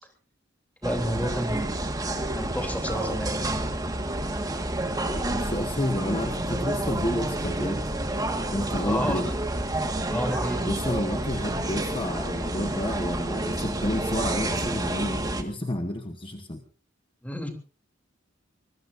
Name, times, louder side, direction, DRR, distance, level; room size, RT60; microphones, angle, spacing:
voice 1, 0.8-1.8 2.3-3.4 8.8-9.2 10.1-10.7 17.2-17.5, equal, 10° left, 4 dB, 3.3 m, -30 dB
sound 1, 0.8-15.4, right 1 dB, 20° right, 1.7 m, -29 dB
voice 2, 5.1-7.9 8.5-9.3 10.7-16.6, left 1 dB, 25° left, 6 dB, 1.2 m, -30 dB
25.0 x 21.0 x 2.6 m, 0.37 s
head